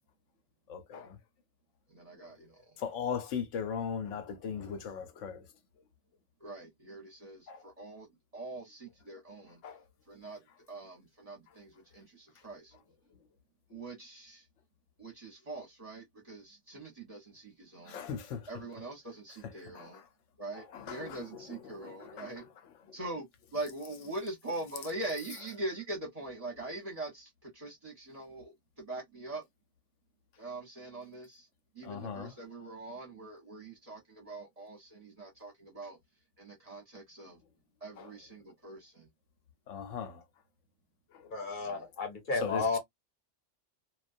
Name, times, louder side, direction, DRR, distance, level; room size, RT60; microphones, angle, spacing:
voice 1, 0.7-1.2 2.2-2.3 2.8-5.5 7.5-7.6 9.6-9.8 13.7-13.8 17.8-18.5 19.7-20.0 20.5-22.4 22.9-23.0 31.8-32.3 38.0-38.1 39.7-40.2 41.1-41.3 41.7-41.8 42.4-42.8, left 7 dB, 80° left, 0.9 m, -39 dB
voice 2, 1.9-2.8 6.4-9.6 10.1-12.8 13.7-14.5 15.0-18.1 18.5-20.0 20.4-22.4 22.9-23.3 23.5-29.5 30.4-31.5 31.7-36.0 36.4-37.4 37.8-39.1 41.6-41.8, right 2 dB, 35° right, 0.8 m, -43 dB
voice 3, 41.3-42.8, left 4 dB, 45° left, 0.8 m, -32 dB
2.3 x 2.2 x 2.5 m
omnidirectional pair, 1.3 m